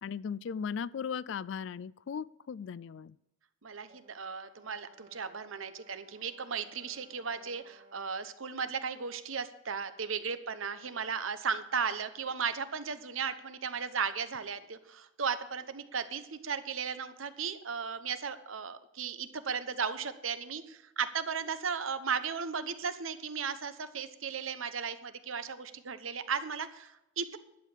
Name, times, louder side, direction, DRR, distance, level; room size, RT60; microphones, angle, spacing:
voice 1, 0.0-3.2, left 6 dB, 65° left, 21 dB, 0.3 m, -37 dB
voice 2, 3.6-27.4, right 6 dB, 80° right, 11 dB, 1.0 m, -36 dB
Brass instrument, 3.9-8.2, equal, 45° right, 2.8 m, -61 dB
11.5 x 7.4 x 7.5 m, 0.88 s
head